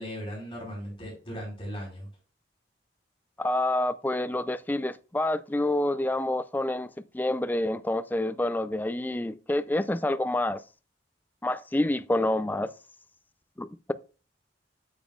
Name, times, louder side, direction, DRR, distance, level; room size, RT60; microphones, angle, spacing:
voice 1, 0.0-2.1, equal, 30° left, 4.5 m, -37 dB
voice 2, 3.4-10.6 11.4-12.7 13.6-13.9, left 1 dB, 10° left, 0.4 m, -28 dB
8.8 x 7.2 x 2.4 m
head